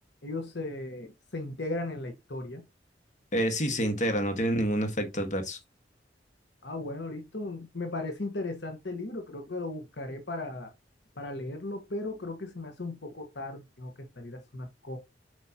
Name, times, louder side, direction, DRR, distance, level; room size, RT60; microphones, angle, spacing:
voice 1, 0.2-2.6 6.6-10.7 11.2-15.0, left 2 dB, 70° left, 1.4 m, -36 dB
voice 2, 3.3-5.6, equal, 45° left, 1.7 m, -28 dB
7.7 x 5.3 x 2.9 m
head